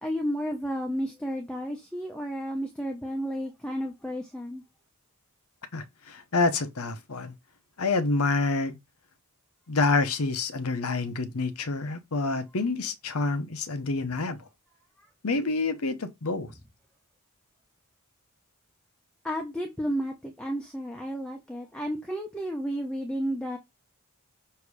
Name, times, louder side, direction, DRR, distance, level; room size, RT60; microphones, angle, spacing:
voice 1, 0.0-4.6 19.2-23.6, equal, 5° left, 0.8 m, -32 dB
voice 2, 5.7-7.3 7.8-8.8 9.7-14.5 15.2-16.5, left 3 dB, 80° left, 0.9 m, -27 dB
6.9 x 2.9 x 4.7 m
head